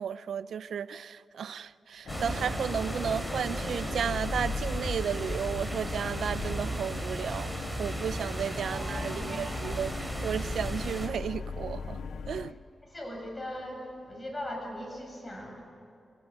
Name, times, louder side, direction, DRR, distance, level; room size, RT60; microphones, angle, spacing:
voice 1, 0.0-12.0 12.3-12.6, right 8 dB, 85° right, 16 dB, 0.6 m, -34 dB
sound 1, 2.1-12.5, left 6 dB, 85° left, 0.7 m, -40 dB
sound 2, 2.1-11.1, right 1 dB, ahead, 4.5 m, -35 dB
voice 2, 8.7-9.8 12.9-15.7, left 1 dB, 25° left, 1 dB, 7.4 m, -40 dB
29.0 x 17.0 x 8.8 m, 2.7 s
cardioid pair, 85°, 0 cm